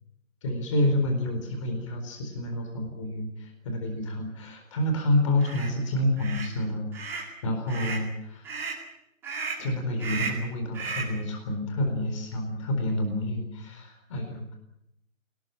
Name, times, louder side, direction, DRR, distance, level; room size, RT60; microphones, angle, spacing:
voice 1, 0.4-8.6 9.6-14.5, left 1 dB, 25° left, 4 dB, 4.2 m, -29 dB
sound 1, 5.4-5.7 6.2-6.5 6.9-7.3 7.7-8.1 8.4-8.8 9.2-9.7 10.0-10.5 10.7-11.2, right 5 dB, 5° right, 2.5 m, -34 dB
25.0 x 19.0 x 8.8 m, 0.78 s
figure-of-eight pair, 165°, 41 cm